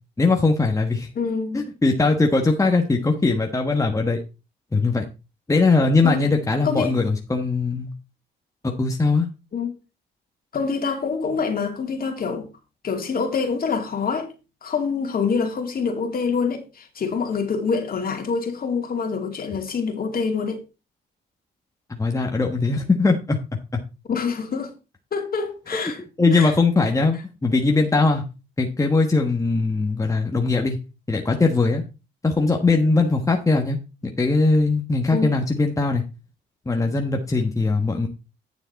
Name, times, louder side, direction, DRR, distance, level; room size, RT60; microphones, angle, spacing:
voice 1, 0.2-1.1 1.5-4.2 4.7-5.0 5.5-7.9 8.6-9.3 22.0-23.4 23.7-23.8 26.2-28.2 28.6-30.8 31.1-31.8 32.2-33.8 34.2-36.0 36.7-38.1, left 3 dB, 15° left, 1.3 m, -20 dB
voice 2, 1.1-1.6 6.0-6.2 6.6-7.0 9.5-9.7 10.5-12.5 12.8-14.3 14.6-20.6 24.1-24.7 25.1-26.0 26.3-26.5 35.1-35.4, left 5 dB, 50° left, 2.6 m, -25 dB
9.3 x 7.0 x 4.1 m
cardioid pair, 90°, 20 cm